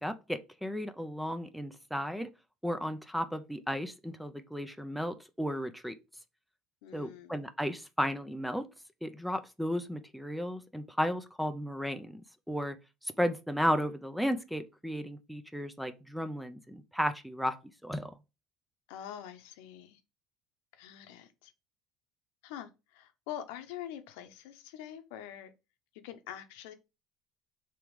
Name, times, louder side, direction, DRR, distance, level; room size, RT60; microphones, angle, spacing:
voice 1, 0.0-2.3 2.6-6.0 6.9-8.7 9.0-12.2 12.5-12.8 13.0-17.6 17.8-18.1, equal, ahead, 0.3 m, -34 dB
voice 2, 6.8-7.4 18.9-20.0 20.7-21.5 22.4-25.5 26.0-26.7, left 10 dB, 85° left, 0.7 m, -45 dB
3.5 x 3.0 x 4.6 m
cardioid pair, 150°, 0 cm